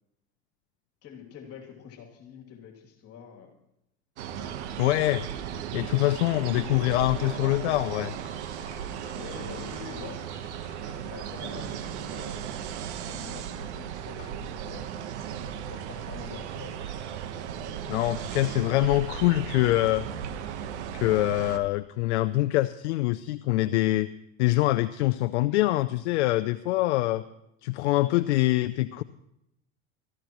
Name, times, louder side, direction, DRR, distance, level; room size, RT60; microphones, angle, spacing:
voice 1, 1.0-3.5 4.4-4.6 8.9-10.6 10.8-12.4 13.1-14.9 15.7-16.8, left 7 dB, 45° left, 0 dB, 2.8 m, -46 dB
sound 1, 4.2-21.6, right 8 dB, 80° right, 1.2 m, -36 dB
voice 2, 4.8-5.3 5.7-8.1 17.9-20.1 20.9-24.1 24.4-27.2 27.6-29.0, left 17 dB, 80° left, 11 dB, 0.6 m, -24 dB
sound 2, 7.0-15.7, left 4 dB, 20° left, 5.7 m, -56 dB
22.0 x 13.5 x 3.1 m, 0.84 s
supercardioid pair, 105°, 34 cm